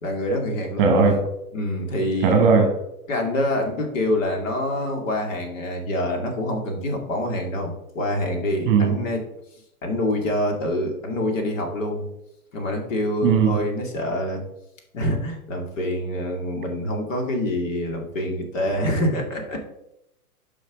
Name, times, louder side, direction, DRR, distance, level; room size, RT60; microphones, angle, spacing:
voice 1, 0.0-0.9 1.5-2.4 3.1-9.2 9.8-12.1 12.5-14.4 14.9-19.7, left 1 dB, 55° left, 2 dB, 2.5 m, -26 dB
voice 2, 0.8-1.3 2.2-2.8 8.7-9.0 13.2-13.6, right 5 dB, 35° right, 6 dB, 1.3 m, -17 dB
9.1 x 5.4 x 4.9 m, 0.84 s
hypercardioid pair, 155°, 45 cm